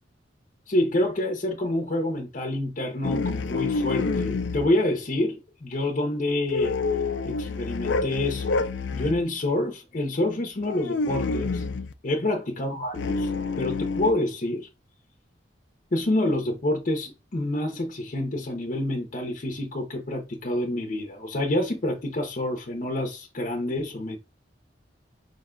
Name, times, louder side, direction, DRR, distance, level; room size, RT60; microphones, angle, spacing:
voice 1, 0.7-6.7 7.2-8.6 8.9-11.6 12.0-13.3 13.6-14.7 15.9-24.2, left 1 dB, 45° left, 0.7 m, -27 dB
sound 1, 3.0-4.7 6.5-9.2 10.6-11.9 12.9-14.1, left 4 dB, 75° left, 0.4 m, -28 dB
5.2 x 2.2 x 3.7 m
head